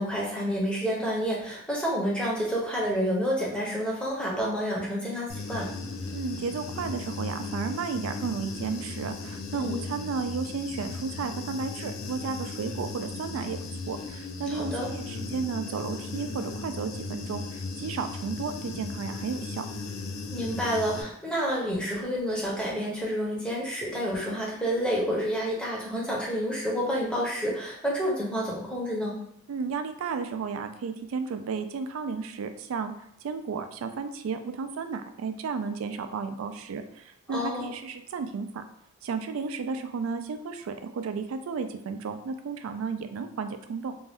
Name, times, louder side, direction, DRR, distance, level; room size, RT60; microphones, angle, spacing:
voice 1, 0.0-5.7 9.5-9.8 14.5-14.9 20.3-29.2 37.3-37.7, equal, 5° left, -4 dB, 0.6 m, -29 dB
Human voice / Buzz, 5.3-21.0, left 3 dB, 75° left, 0.4 m, -37 dB
voice 2, 6.1-13.6 13.9-19.7 29.5-32.9 33.2-38.6 39.0-43.9, right 5 dB, 80° right, 8 dB, 0.3 m, -33 dB
2.6 x 2.2 x 3.3 m, 0.75 s
head